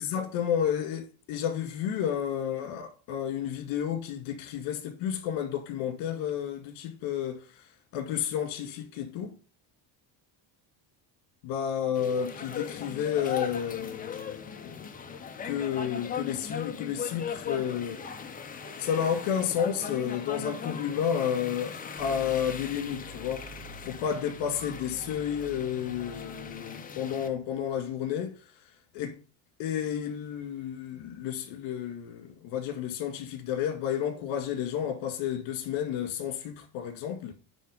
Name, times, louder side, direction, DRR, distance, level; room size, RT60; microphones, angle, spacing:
voice 1, 0.0-7.4 7.9-9.3 11.4-14.8 15.4-18.0 18.8-23.5 23.8-28.4 28.9-29.2 29.6-37.3, left 9 dB, 75° left, 2.1 m, -31 dB
sound 1, 11.9-27.3, left 6 dB, 20° left, 0.6 m, -39 dB
sound 2, 22.0-27.9, right 3 dB, 85° right, 3.4 m, -50 dB
9.4 x 3.4 x 5.0 m
cardioid pair, 160°, 47 cm